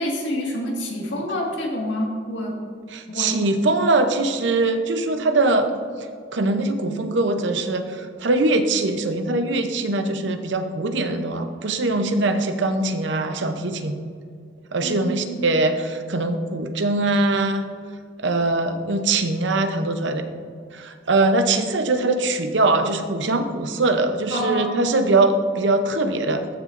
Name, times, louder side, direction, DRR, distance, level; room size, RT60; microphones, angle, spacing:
voice 1, 0.0-2.6 3.1-3.3 14.8-15.5 24.3-25.0, equal, 75° left, -1 dB, 1.8 m, -27 dB
voice 2, 2.9-5.7 6.3-14.0 14.7-17.7 18.2-20.2 20.7-26.6, right 2 dB, 70° right, 7 dB, 0.7 m, -22 dB
14.0 x 6.4 x 2.5 m, 2.1 s
head